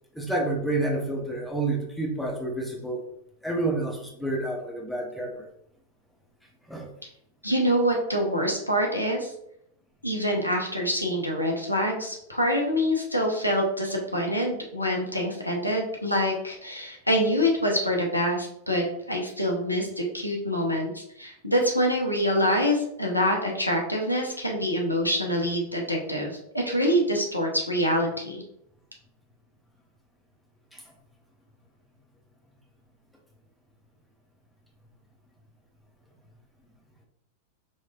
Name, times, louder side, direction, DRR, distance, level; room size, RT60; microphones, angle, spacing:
voice 1, 0.1-3.0 3.4-5.4 6.7-6.9 30.7-30.8, right 2 dB, ahead, -1 dB, 0.8 m, -29 dB
voice 2, 7.4-9.3 10.0-28.4, equal, 90° left, 0 dB, 0.8 m, -25 dB
4.2 x 3.1 x 2.4 m, 0.75 s
figure-of-eight pair, 90°, 0 cm